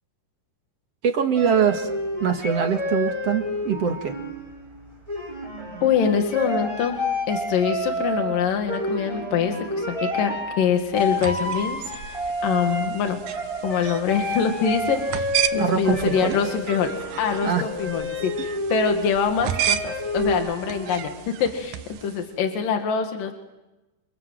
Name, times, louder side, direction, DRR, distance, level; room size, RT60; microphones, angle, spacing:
voice 1, 1.0-1.9 2.2-4.1 15.6-16.4 17.4-17.6, right 7 dB, 50° right, 5 dB, 2.5 m, -23 dB
sound 1, 1.3-21.3, equal, 10° right, 5.3 m, -30 dB
voice 2, 5.8-7.0 7.3-13.2 13.6-16.9 17.2-21.1 21.4-23.3, left 7 dB, 75° left, 5 dB, 3.6 m, -24 dB
sound 2, 11.0-22.3, right 11 dB, 70° right, 2.5 m, -33 dB
28.0 x 27.5 x 7.8 m, 1.0 s
omnidirectional pair, 4.0 m